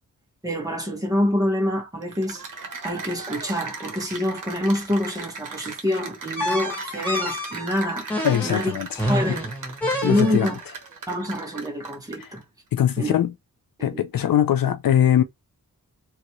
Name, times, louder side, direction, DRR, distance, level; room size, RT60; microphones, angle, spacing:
voice 1, 0.4-2.5 2.8-8.1 8.4-8.7 9.1-9.5 10.0-10.6 11.1-12.4 13.0-13.2 13.8-14.0, left 1 dB, 10° right, 1.5 m, -26 dB
Cheering / Applause, 2.0-12.4, right 4 dB, 70° right, 1.0 m, -37 dB
sound 1, 6.4-10.6, left 1 dB, 5° left, 1.6 m, -28 dB
voice 2, 8.2-8.9 10.0-10.5 12.2-12.3 12.7-13.3 13.8-15.2, left 10 dB, 85° left, 0.6 m, -21 dB
3.1 x 2.5 x 3.0 m
wide cardioid pair, 95°, 33 cm